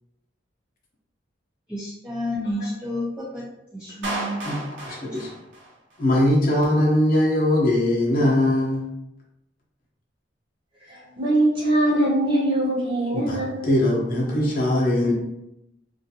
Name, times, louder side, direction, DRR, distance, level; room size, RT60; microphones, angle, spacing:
voice 1, 1.7-3.4 3.7-4.4, left 1 dB, 5° right, -6 dB, 0.3 m, -30 dB
Clapping, 4.0-6.1, right 1 dB, 70° right, 0.5 m, -33 dB
voice 2, 4.4-5.3 6.0-8.9 13.1-15.1, left 1 dB, 50° left, -3 dB, 0.7 m, -21 dB
voice 3, 10.9-13.7, right 1 dB, 30° right, -6 dB, 0.8 m, -22 dB
2.4 x 2.3 x 2.7 m, 0.87 s
head